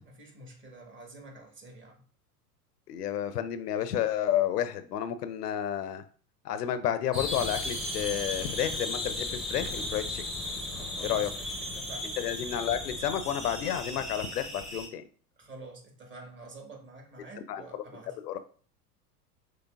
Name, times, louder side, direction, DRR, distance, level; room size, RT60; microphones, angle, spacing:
voice 1, 0.0-2.0 10.7-12.1 15.4-18.2, right 2 dB, 25° right, 1 dB, 1.3 m, -48 dB
voice 2, 2.9-6.0 6.4-10.2 11.0-11.3 12.2-15.0 17.5-17.8 18.2-18.4, left 10 dB, 80° left, 12 dB, 0.6 m, -31 dB
sound 1, 7.1-14.9, left 1 dB, ahead, 0.7 m, -35 dB
5.8 x 3.2 x 2.4 m, 0.43 s
hypercardioid pair, 90°, 46 cm